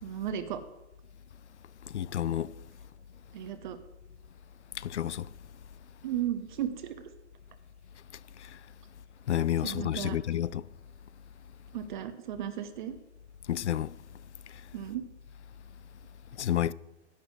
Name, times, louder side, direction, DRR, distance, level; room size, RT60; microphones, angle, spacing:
voice 1, 0.0-0.6 3.3-3.8 6.0-7.1 9.6-10.2 11.7-13.0 14.7-15.0 16.4-16.5, right 10 dB, 40° right, 0.9 m, -35 dB
voice 2, 1.9-2.5 4.8-5.3 9.3-10.6 13.5-13.9 16.4-16.7, left 11 dB, 70° left, 0.5 m, -29 dB
11.0 x 6.0 x 7.7 m
figure-of-eight pair, 110°, 36 cm